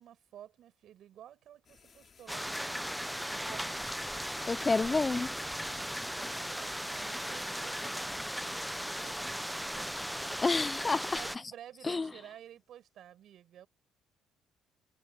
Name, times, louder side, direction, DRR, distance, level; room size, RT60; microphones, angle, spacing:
voice 1, 0.0-2.8 3.3-4.0 5.5-8.3 8.8-10.6 11.1-13.7, right 11 dB, 65° right, 6.6 m, -53 dB
sound 1, 1.6-7.5, left 6 dB, 40° left, 2.9 m, -59 dB
sound 2, 2.3-11.4, equal, ahead, 1.1 m, -37 dB
voice 2, 4.5-5.3 10.4-11.2 11.9-12.1, left 3 dB, 25° left, 0.7 m, -29 dB
cardioid pair, 95°, 0 cm